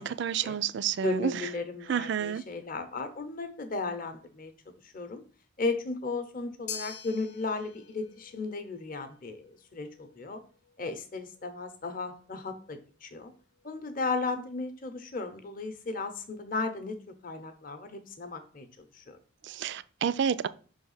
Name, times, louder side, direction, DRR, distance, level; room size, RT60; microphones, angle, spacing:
voice 1, 0.0-1.4 1.9-2.4 19.4-20.5, right 8 dB, 55° right, 0.3 m, -30 dB
voice 2, 1.0-4.5 4.9-5.2 5.6-10.4 10.8-13.3 13.6-19.2, left 3 dB, 40° left, 0.7 m, -35 dB
sound 1, 6.7-15.0, left 6 dB, 90° left, 0.9 m, -48 dB
5.6 x 3.4 x 5.5 m
head